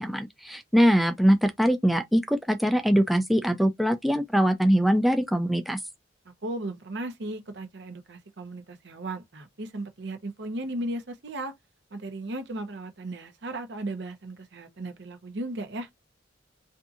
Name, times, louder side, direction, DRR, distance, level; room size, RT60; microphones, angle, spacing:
voice 1, 0.0-5.8, equal, ahead, 0.3 m, -22 dB
voice 2, 6.4-11.5 11.9-15.9, right 1 dB, 65° right, 0.7 m, -36 dB
2.6 x 2.5 x 2.4 m
head